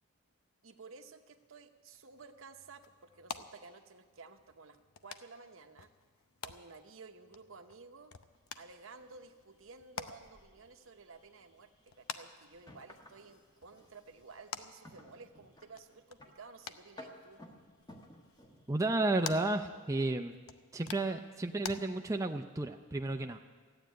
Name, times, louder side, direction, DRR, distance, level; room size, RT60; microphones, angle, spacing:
voice 1, 0.6-5.9 6.4-8.1 8.6-11.7 12.0-17.4, right 4 dB, 70° right, 7 dB, 0.9 m, -54 dB
sound 1, 1.9-21.8, left 6 dB, 80° left, 0.7 m, -50 dB
more rumbling wood beams, 8.4-19.5, left 1 dB, 20° left, 1.3 m, -58 dB
voice 2, 18.7-20.3 20.7-23.4, right 2 dB, 15° right, 4 dB, 0.5 m, -32 dB
14.5 x 8.9 x 9.3 m, 1.5 s
head